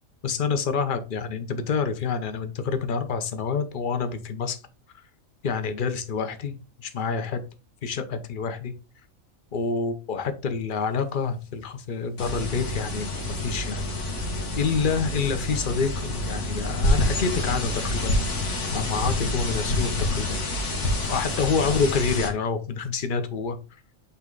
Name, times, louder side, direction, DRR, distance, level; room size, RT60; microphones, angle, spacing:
voice 1, 0.2-4.6 5.4-6.5 6.8-7.4 7.8-8.7 9.5-13.8 14.6-18.4 18.7-20.4 21.1-23.6, left 5 dB, 45° left, 8 dB, 0.9 m, -27 dB
sound 1, 12.2-22.3, left 1 dB, 60° left, 1.8 m, -27 dB
8.4 x 3.2 x 3.9 m, 0.32 s
omnidirectional pair, 1.4 m